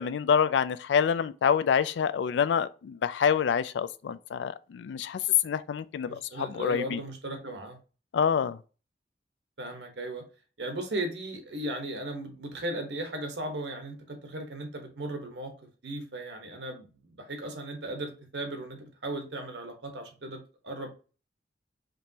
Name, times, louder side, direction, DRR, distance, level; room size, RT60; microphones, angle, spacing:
voice 1, 0.0-7.0 8.1-8.6, left 7 dB, 85° left, 0.3 m, -27 dB
voice 2, 6.0-7.8 9.6-10.2 10.6-15.5 15.8-20.9, right 1 dB, 85° right, 1.2 m, -37 dB
5.1 x 3.0 x 2.8 m
head